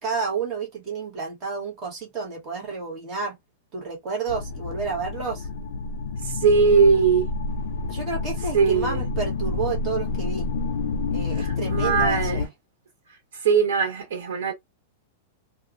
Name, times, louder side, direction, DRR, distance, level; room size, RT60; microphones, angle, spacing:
voice 1, 0.0-3.4 3.7-5.5 7.9-10.5 11.1-12.5, right 5 dB, 20° right, 1.0 m, -30 dB
sound 1, 4.3-12.5, left 3 dB, 65° left, 0.5 m, -29 dB
voice 2, 6.3-7.3 8.5-9.0 11.4-12.4 13.4-14.5, right 5 dB, 60° right, 1.1 m, -20 dB
2.9 x 2.1 x 2.4 m
supercardioid pair, 180°, 0 cm